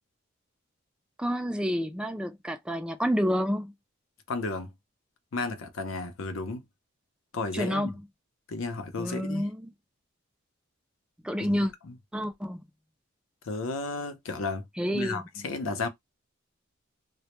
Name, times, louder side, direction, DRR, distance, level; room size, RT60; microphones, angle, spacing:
voice 1, 1.2-3.7 7.5-7.9 9.0-9.7 11.2-11.7 12.1-12.6 14.8-15.2, equal, 5° right, 0.3 m, -29 dB
voice 2, 4.3-4.7 5.3-6.6 7.3-7.9 8.5-9.5 11.4-11.9 13.4-14.7 14.9-15.9, left 3 dB, 70° left, 0.5 m, -33 dB
2.1 x 2.0 x 2.9 m
head